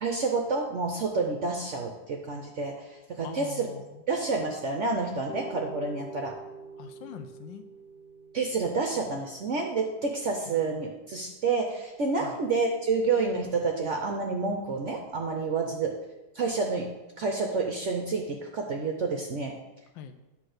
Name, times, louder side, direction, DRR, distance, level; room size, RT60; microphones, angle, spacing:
voice 1, 0.0-3.7 4.1-6.3 8.3-15.9 16.3-16.9 17.2-19.5, right 4 dB, 65° right, 2 dB, 0.7 m, -29 dB
voice 2, 3.2-4.0 6.8-7.6 10.5-10.6 12.2-12.4 15.6-15.8 19.9-20.2, left 8 dB, 85° left, 9 dB, 1.4 m, -43 dB
sound 1, 5.3-11.0, right 4 dB, 40° left, 1.1 m, -47 dB
9.6 x 3.3 x 6.4 m, 1.0 s
omnidirectional pair, 2.0 m